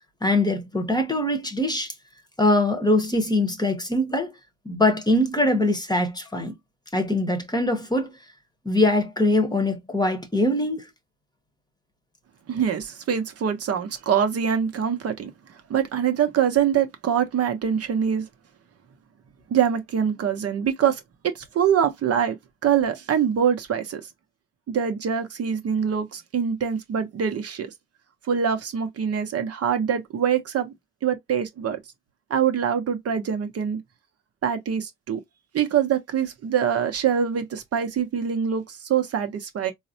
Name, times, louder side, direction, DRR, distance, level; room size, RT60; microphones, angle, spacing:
voice 1, 0.2-1.9 2.4-4.3 4.6-6.5 6.9-8.1 8.6-10.9, left 1 dB, 15° left, 0.9 m, -22 dB
voice 2, 12.5-15.3 15.7-18.3 19.5-21.0 21.3-22.4 22.6-24.0 24.7-27.7 28.3-30.7 31.0-31.8 32.3-33.8 34.4-35.2 35.5-39.7, right 8 dB, 55° right, 0.8 m, -24 dB
3.9 x 2.1 x 2.7 m
cardioid pair, 90°, 30 cm